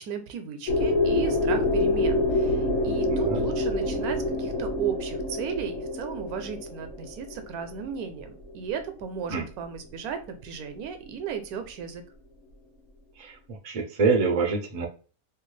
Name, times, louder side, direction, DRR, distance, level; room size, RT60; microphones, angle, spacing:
voice 1, 0.0-12.0, right 7 dB, 85° right, 8 dB, 1.1 m, -35 dB
sound 1, 0.7-8.5, left 2 dB, 65° left, 1.3 m, -26 dB
voice 2, 3.1-3.5 9.3-9.5 13.2-14.9, right 4 dB, 70° right, 3 dB, 0.3 m, -26 dB
3.1 x 2.3 x 3.1 m, 0.36 s
omnidirectional pair, 1.5 m